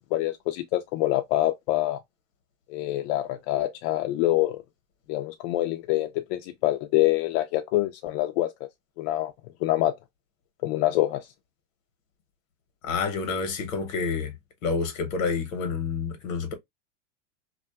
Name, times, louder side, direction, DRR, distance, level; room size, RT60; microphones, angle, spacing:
voice 1, 0.0-2.0 2.7-4.6 5.1-8.5 9.0-9.3 9.6-9.9 10.6-11.3, left 15 dB, 60° left, 0.5 m, -25 dB
voice 2, 12.8-14.3 14.6-16.5, left 5 dB, 85° left, 1.0 m, -28 dB
2.4 x 2.3 x 2.2 m
hypercardioid pair, 100°, 38 cm